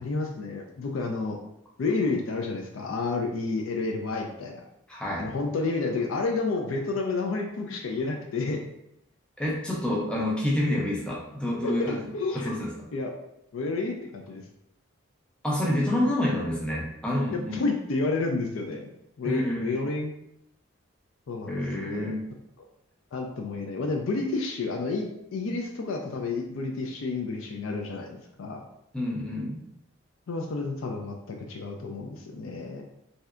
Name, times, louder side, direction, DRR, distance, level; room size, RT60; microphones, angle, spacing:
voice 1, 0.0-1.4 1.8-4.6 5.2-8.6 11.6-12.5 12.9-13.1 13.5-14.4 17.3-18.9 19.2-20.1 21.3-22.2 23.1-28.6 30.3-32.8, left 3 dB, 80° left, 2 dB, 0.4 m, -30 dB
voice 2, 4.9-5.3 9.4-12.0 12.3-12.9 15.4-17.6 19.2-19.8 21.5-22.2 28.9-29.6, left 1 dB, 5° left, -4 dB, 0.4 m, -28 dB
3.2 x 2.7 x 2.4 m, 0.79 s
head